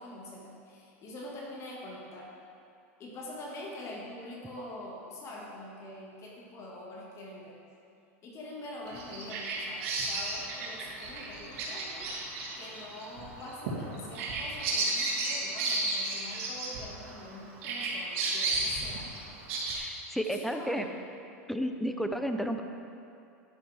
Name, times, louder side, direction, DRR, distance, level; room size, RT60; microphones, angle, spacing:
voice 1, 0.0-2.3 3.0-7.6 8.2-12.1 12.6-19.1 20.1-21.0, left 1 dB, 40° left, -3 dB, 2.0 m, -44 dB
Bird vocalization bird call bird song, 8.9-17.3 17.6-19.8, right 3 dB, 65° right, 2.9 m, -33 dB
voice 2, 19.7-20.9 21.5-22.6, equal, ahead, 6 dB, 0.8 m, -32 dB
11.5 x 10.5 x 3.6 m, 2.6 s
hypercardioid pair, 105°, 7 cm